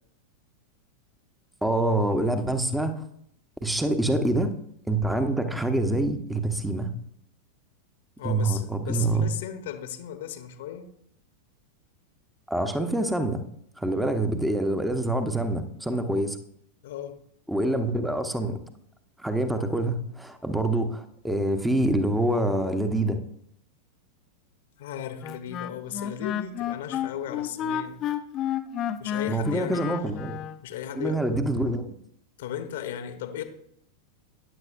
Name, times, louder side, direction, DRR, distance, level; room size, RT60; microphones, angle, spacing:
voice 1, 1.6-3.0 3.6-4.5 4.9-6.9 8.2-9.3 12.5-13.4 13.8-16.4 17.5-18.6 19.2-23.2 29.3-30.4 30.9-32.0, right 1 dB, 5° right, 8 dB, 1.0 m, -26 dB
voice 2, 8.2-10.9 16.8-17.2 24.8-28.0 29.0-29.9 30.6-31.2 32.4-33.4, left 10 dB, 55° left, 8 dB, 1.1 m, -36 dB
Wind instrument woodwind instrument, 25.2-30.6, left 10 dB, 35° left, 0.7 m, -31 dB
14.0 x 10.0 x 2.6 m, 0.69 s
figure-of-eight pair, 90°, 0 cm